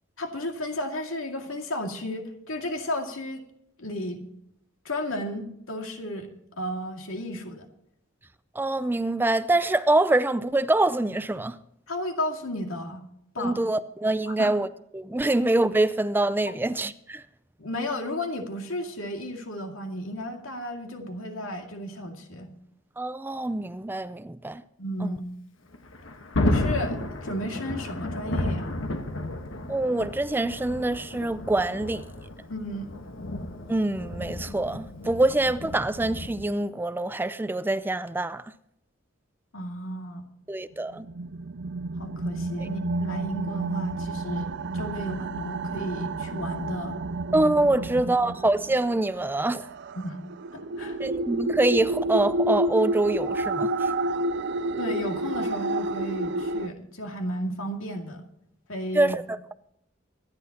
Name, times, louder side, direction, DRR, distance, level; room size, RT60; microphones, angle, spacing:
voice 1, 0.2-3.4 3.8-4.2 4.8-6.3 6.6-7.7 11.9-13.0 13.3-13.6 14.3-14.5 16.5-16.6 17.6-22.5 24.8-25.2 26.4-28.7 32.5-32.9 39.5-40.2 42.0-47.0 50.0-50.2 50.5-51.0 54.8-58.3 58.7-59.2, left 1 dB, 90° left, 2.2 m, -33 dB
voice 2, 8.6-11.6 13.4-14.7 14.9-17.2 23.0-24.6 25.0-25.2 29.7-32.0 33.7-38.4 40.5-41.1 42.6-42.7 47.3-49.7 51.0-53.9 58.9-59.2, right 2 dB, 10° right, 0.4 m, -25 dB
Thunder, 25.7-36.5, left 2 dB, 70° left, 1.3 m, -32 dB
sound 1, 40.9-56.7, right 2 dB, 60° right, 0.5 m, -30 dB
24.5 x 10.5 x 2.9 m
head